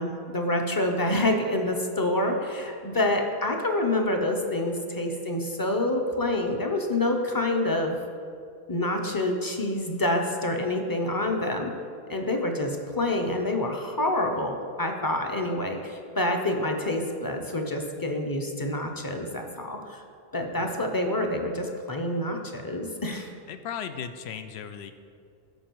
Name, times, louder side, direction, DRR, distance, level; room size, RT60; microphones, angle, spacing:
voice 1, 0.0-8.0 8.7-11.7 12.1-20.0 20.3-23.3, left 1 dB, 25° left, 3 dB, 0.6 m, -27 dB
voice 2, 23.5-24.9, left 7 dB, 90° left, 9 dB, 0.9 m, -37 dB
12.5 x 4.8 x 4.6 m, 2.3 s
omnidirectional pair, 1.0 m